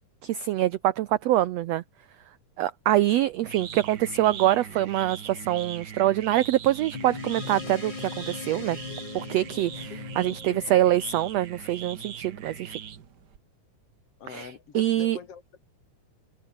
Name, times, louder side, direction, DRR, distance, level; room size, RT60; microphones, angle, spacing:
voice 1, 0.2-1.8 2.6-8.8 9.1-12.8 14.3-15.2, right 14 dB, 75° right, 1.5 m, -25 dB
sound 1, 3.0-13.4, right 8 dB, 55° right, 1.2 m, -41 dB
sound 2, 6.9-11.8, left 5 dB, 35° left, 2.8 m, -39 dB
voice 2, 9.9-10.6 14.2-15.6, left 7 dB, 50° left, 2.6 m, -43 dB
omnidirectional pair, 3.7 m